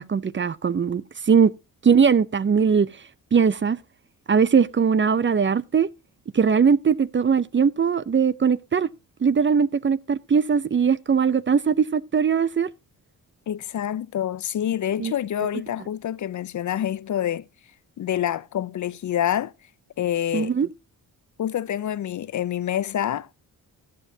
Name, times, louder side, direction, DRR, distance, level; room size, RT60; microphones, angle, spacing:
voice 1, 0.0-1.5 1.8-2.9 3.3-3.8 4.3-5.9 6.3-8.9 9.2-12.7 15.0-15.1 20.3-20.7, right 6 dB, 30° right, 0.6 m, -20 dB
voice 2, 13.5-17.4 18.0-19.5 20.0-20.5 21.4-23.4, left 10 dB, 50° left, 0.5 m, -27 dB
15.0 x 9.8 x 2.7 m
cardioid pair, 65°, 37 cm